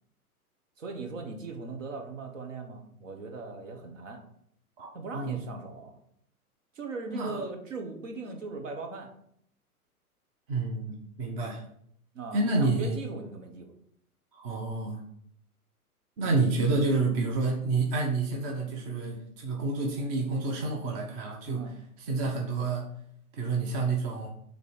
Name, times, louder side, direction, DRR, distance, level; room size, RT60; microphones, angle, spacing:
voice 1, 0.8-4.2 4.9-6.0 6.7-9.1 12.1-13.7 16.2-16.4 21.6-21.8, right 3 dB, 60° right, 3 dB, 1.5 m, -39 dB
voice 2, 7.0-7.4 10.5-11.6 12.3-13.0 14.3-15.0 16.2-21.7 22.0-22.9 23.3-24.3, right 3 dB, 25° right, 1 dB, 0.8 m, -29 dB
6.7 x 3.3 x 5.0 m, 0.68 s
figure-of-eight pair, 115°, 45 cm